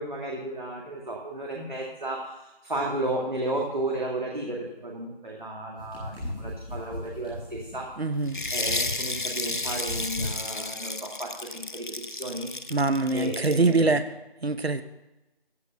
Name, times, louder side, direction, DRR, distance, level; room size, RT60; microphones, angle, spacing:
voice 1, 0.0-7.9 8.5-12.5 13.1-13.9, right 1 dB, 50° right, -2 dB, 2.1 m, -33 dB
sound 1, 5.8-9.2 9.5-10.4, left 1 dB, 10° left, 3.4 m, -37 dB
voice 2, 8.0-8.4 12.7-14.0 14.4-14.8, right 3 dB, 85° right, 11 dB, 1.0 m, -23 dB
sound 2, 8.3-13.8, left 2 dB, 55° left, 0.7 m, -32 dB
14.5 x 5.0 x 7.6 m, 1.0 s
figure-of-eight pair, 170°, 30 cm